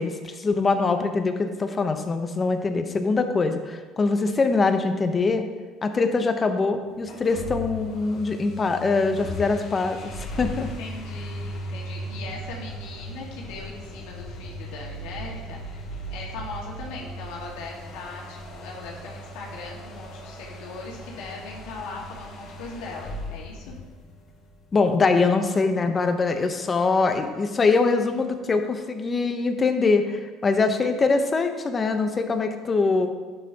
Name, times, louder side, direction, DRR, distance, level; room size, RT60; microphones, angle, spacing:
voice 1, 0.0-5.5 5.8-10.7 24.7-33.1, left 4 dB, 30° left, 7 dB, 0.9 m, -23 dB
sound 1, 7.0-24.5, equal, 60° left, 2.8 m, -37 dB
voice 2, 10.8-23.8, left 3 dB, 80° left, -3 dB, 1.9 m, -39 dB
10.5 x 7.8 x 2.9 m, 1.4 s
supercardioid pair, 90°, 0 cm